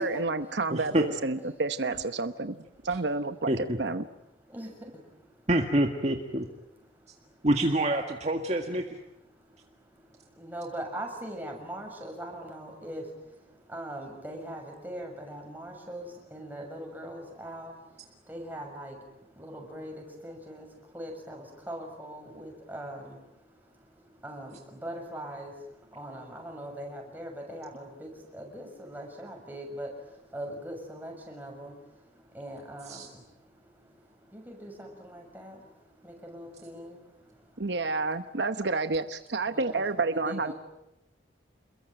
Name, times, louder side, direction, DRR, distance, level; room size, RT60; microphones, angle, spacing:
voice 1, 0.0-3.5 3.8-4.1 37.6-40.5, right 3 dB, 75° right, 10 dB, 1.0 m, -30 dB
voice 2, 0.7-1.0 3.5-3.8 5.5-6.5 7.4-9.0 32.9-33.1, right 1 dB, 40° right, 3 dB, 1.8 m, -26 dB
voice 3, 10.4-13.0 13.7-17.7 18.3-18.9 19.4-20.7 20.9-23.2 24.2-24.6 24.8-25.5 25.9-29.9 30.3-31.7 32.3-33.0 34.3-35.6 36.0-37.0 39.5-39.8 40.1-40.5, right 1 dB, 10° right, 1 dB, 6.6 m, -40 dB
28.5 x 22.0 x 9.1 m, 0.89 s
head